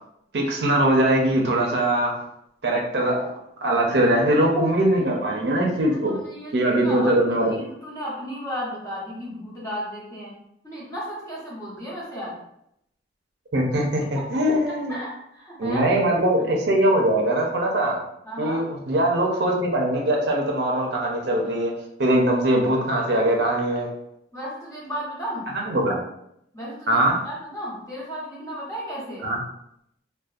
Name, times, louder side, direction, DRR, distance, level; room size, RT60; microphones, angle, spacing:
voice 1, 0.3-2.1 2.6-3.3 3.6-6.2 6.5-7.5 13.5-14.9 15.6-18.0 18.4-21.7 22.0-23.9 25.5-26.0 26.9-27.2 29.2-29.4, right 1 dB, 70° right, 0 dB, 0.5 m, -21 dB
voice 2, 5.8-7.1 7.4-10.3 10.6-12.4 14.1-14.2 14.7-15.9 18.2-18.6 24.3-25.5 26.5-29.3, equal, 15° left, -7 dB, 0.8 m, -34 dB
2.5 x 2.1 x 2.3 m, 0.77 s
head